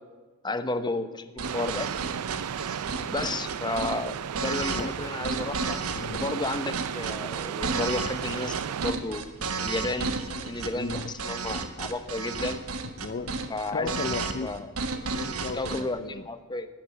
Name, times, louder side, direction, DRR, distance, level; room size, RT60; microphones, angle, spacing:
voice 1, 0.4-1.9 3.1-5.8 6.1-9.3 9.6-10.1 10.4-12.6 13.5-13.9 14.4-14.7 15.5-16.7, left 2 dB, 20° left, 10 dB, 0.9 m, -32 dB
sound 1, 1.4-15.8, right 4 dB, 70° right, 1.3 m, -32 dB
sound 2, 1.4-8.9, right 8 dB, 90° right, 0.4 m, -34 dB
voice 2, 5.9-6.3 10.7-11.1 13.0-14.7 15.0-16.3, left 4 dB, 40° left, 10 dB, 0.5 m, -35 dB
18.0 x 11.5 x 6.6 m, 1.3 s
head